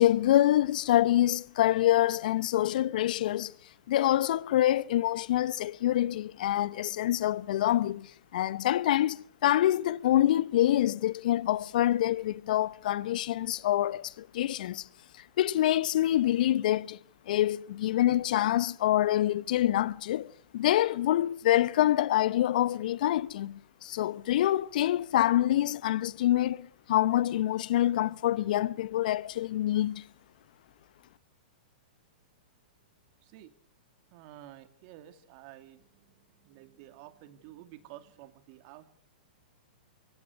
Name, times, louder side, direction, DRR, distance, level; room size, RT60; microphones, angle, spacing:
voice 1, 0.0-3.5 3.9-14.8 15.4-17.0 17.3-30.0, left 13 dB, 60° left, 0.8 m, -26 dB
voice 2, 33.2-33.5 34.1-38.9, right 13 dB, 45° right, 2.6 m, -51 dB
24.0 x 16.5 x 8.2 m
hypercardioid pair, 115°, 5 cm